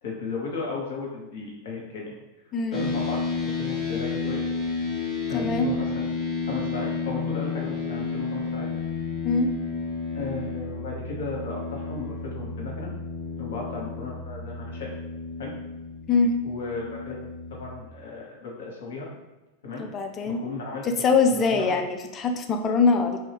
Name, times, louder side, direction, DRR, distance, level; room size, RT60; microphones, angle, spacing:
voice 1, 0.0-2.1 2.7-4.4 5.3-6.1 6.5-8.7 10.1-12.9 13.4-14.9 15.4-15.5 16.4-17.2 17.5-19.1 19.6-19.8 20.2-20.9 21.3-21.7, left 3 dB, 55° left, -3 dB, 1.0 m, -35 dB
voice 2, 2.5-2.8 5.3-5.7 9.2-9.5 16.1-16.3 19.8-20.4 21.0-23.2, left 4 dB, 25° left, 5 dB, 0.4 m, -23 dB
sound 1, 2.7-17.8, left 4 dB, 5° left, 0.9 m, -31 dB
3.3 x 2.7 x 3.3 m, 1.0 s
figure-of-eight pair, 90°, 0 cm